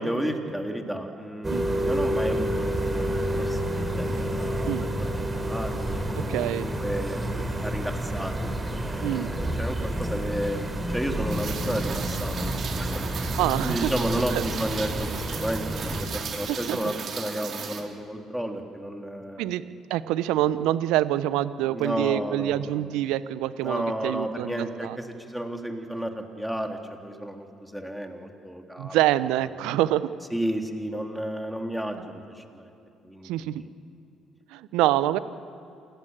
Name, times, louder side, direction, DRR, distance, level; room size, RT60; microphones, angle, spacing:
voice 1, 0.0-7.2 7.6-13.0 13.6-16.1 16.3-19.5 21.7-22.8 23.6-29.0 29.5-29.7 30.3-32.7 33.0-33.6, right 1 dB, ahead, 3 dB, 3.5 m, -32 dB
Churchbell Village, 1.4-16.0, right 1 dB, 20° right, 4.4 m, -29 dB
voice 2, 6.3-6.7 9.0-9.3 13.4-13.9 14.3-14.4 15.0-15.1 16.5-16.8 19.4-19.6 19.9-25.0 28.8-30.1 33.2-33.6 34.5-35.2, right 14 dB, 70° right, 15 dB, 0.9 m, -26 dB
Rain, 11.3-17.8, right 6 dB, 50° right, 3.6 m, -36 dB
28.0 x 17.5 x 7.6 m, 2.9 s
hypercardioid pair, 55°, 0 cm